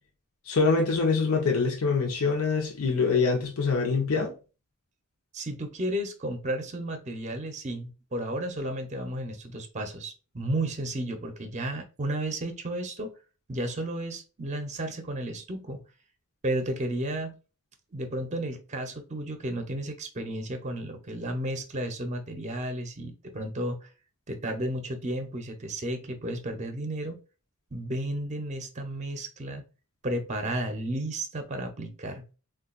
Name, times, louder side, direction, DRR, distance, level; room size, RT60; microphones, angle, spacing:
voice 1, 0.5-4.3, left 4 dB, 75° left, 0.7 m, -24 dB
voice 2, 5.3-13.1 13.5-15.8 16.4-17.3 17.9-23.8 24.3-27.2 27.7-29.6 30.0-32.2, right 1 dB, 30° right, 0.6 m, -33 dB
3.7 x 2.3 x 2.4 m
head